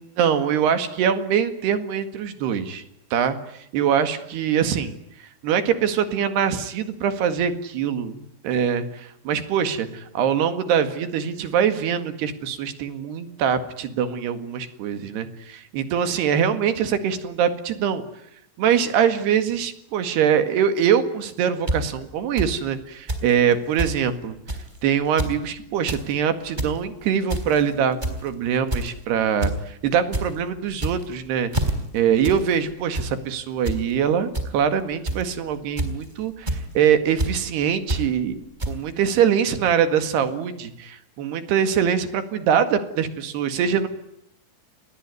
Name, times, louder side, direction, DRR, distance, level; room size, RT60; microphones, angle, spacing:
voice 1, 0.2-2.8 3.1-5.0 5.4-18.0 18.6-24.4 24.8-31.5 31.9-38.4 38.7-43.9, right 8 dB, 60° right, 9 dB, 3.6 m, -23 dB
sound 1, 21.7-21.8 22.4-22.5 23.1-23.3 23.5-23.6 23.8-23.9 24.5-24.7 25.0-25.3 25.7-26.0 26.4-26.7 27.3-27.6 28.0-28.3 28.7-29.0 29.4-29.6 29.9-30.2 30.7-31.1 31.5-31.7 32.2-32.4 32.7-33.1 33.6-33.8 34.3-34.4 35.0-35.3 35.8-36.0 36.5-36.6 37.2-37.3 37.9-38.0 38.6-38.7, right 2 dB, 10° right, 3.0 m, -25 dB
29.0 x 21.0 x 9.6 m, 0.75 s
omnidirectional pair, 5.7 m